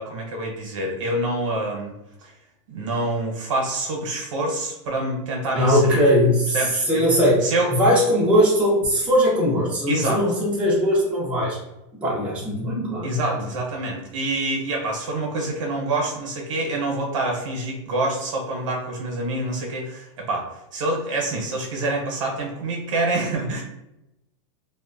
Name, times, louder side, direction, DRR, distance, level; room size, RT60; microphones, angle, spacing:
voice 1, 0.0-1.9 2.2-2.3 2.7-6.0 6.5-7.0 7.4-7.7 9.9-10.2 13.0-23.6, right 2 dB, 75° right, 0 dB, 0.9 m, -26 dB
voice 2, 5.5-11.6 12.0-13.4, equal, 5° right, -7 dB, 0.7 m, -20 dB
2.7 x 2.2 x 2.5 m, 0.88 s
supercardioid pair, 165°, 16 cm